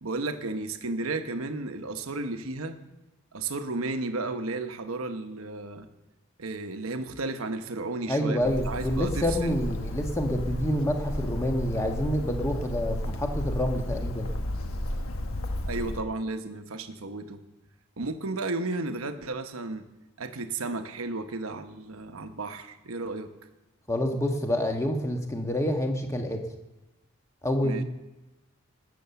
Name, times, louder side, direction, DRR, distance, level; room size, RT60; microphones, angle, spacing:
voice 1, 0.0-2.8 3.3-5.9 6.4-9.6 15.6-17.4 18.0-19.8 20.2-23.3 27.6-27.8, right 3 dB, 85° right, 8 dB, 1.0 m, -33 dB
voice 2, 8.1-14.3 23.9-26.4 27.4-27.8, equal, 15° left, 3 dB, 1.3 m, -28 dB
Bird, 8.4-16.0, left 1 dB, 80° left, 1.3 m, -33 dB
19.0 x 6.9 x 7.0 m, 1.1 s
head